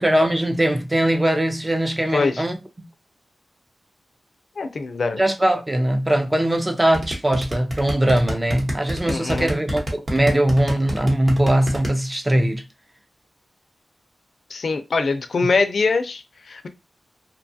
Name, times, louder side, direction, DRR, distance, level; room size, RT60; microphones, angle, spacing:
voice 1, 0.0-2.6 5.2-12.6, right 1 dB, 20° right, 0.5 m, -20 dB
voice 2, 2.1-2.4 4.6-5.2 9.0-9.5 14.5-16.7, left 4 dB, 65° left, 0.4 m, -23 dB
sound 1, 6.9-11.9, equal, 40° right, 1.0 m, -26 dB
2.7 x 2.3 x 2.6 m
wide cardioid pair, 95°, 0 cm